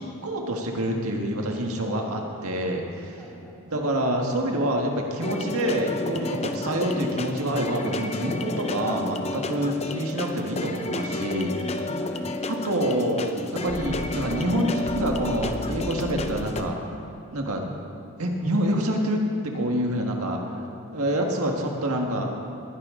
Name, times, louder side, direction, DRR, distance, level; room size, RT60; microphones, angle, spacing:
voice 1, 0.0-3.1 3.6-11.8 12.5-16.8 17.3-17.7 18.2-20.4 20.9-22.3, right 1 dB, 80° right, 1 dB, 1.6 m, -27 dB
voice 2, 3.2-3.6 12.0-12.3 20.3-21.1, equal, ahead, -8 dB, 3.0 m, -48 dB
sound 1, 5.2-16.6, left 2 dB, 30° left, 0.6 m, -31 dB
20.0 x 10.5 x 3.8 m, 2.8 s
head